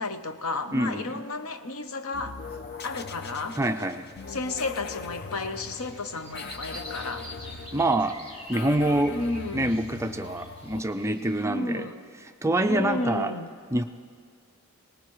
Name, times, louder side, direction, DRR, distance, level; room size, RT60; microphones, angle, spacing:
voice 1, 0.0-2.4 2.8-3.6 4.3-7.3 9.1-9.7 11.4-12.0 12.7-13.5, left 2 dB, 80° left, 9 dB, 0.8 m, -32 dB
voice 2, 0.7-1.1 3.6-4.1 7.7-8.2 8.5-9.2 9.5-11.9 12.4-13.3 13.7-13.8, right 1 dB, 15° right, 7 dB, 0.4 m, -25 dB
sound 1, 2.1-10.8, left 4 dB, 50° left, 0.6 m, -41 dB
sound 2, 5.5-11.5, equal, 25° left, 1.6 m, -46 dB
23.0 x 19.0 x 3.1 m, 2.1 s
head